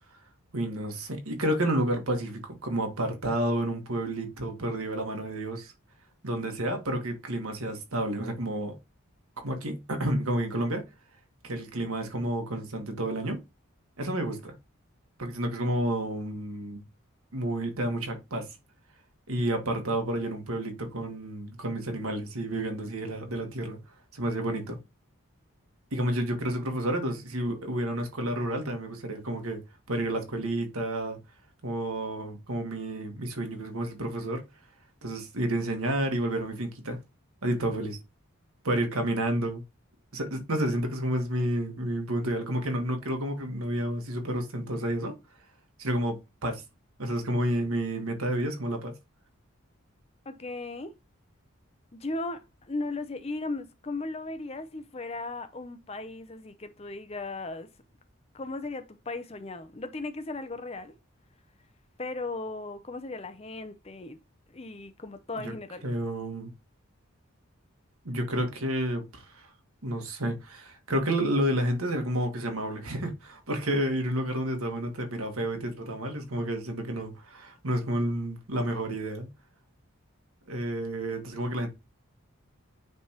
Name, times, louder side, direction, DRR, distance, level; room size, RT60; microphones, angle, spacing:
voice 1, 0.5-5.7 6.2-8.7 9.4-10.8 11.4-13.4 14.0-14.5 15.2-16.8 17.3-18.5 19.3-23.8 24.1-24.8 25.9-29.6 29.9-31.2 31.6-34.4 35.0-37.0 37.4-38.0 38.6-39.6 40.1-45.1 45.8-46.6 47.0-48.9 65.4-65.5 65.8-66.5 68.0-69.5 69.8-79.3 80.5-81.7, right 1 dB, 85° right, 1.6 m, -30 dB
voice 2, 50.3-50.9 51.9-57.7 58.3-61.0 62.0-64.2 64.5-65.8, left 2 dB, 30° left, 0.6 m, -37 dB
9.3 x 3.4 x 3.0 m
head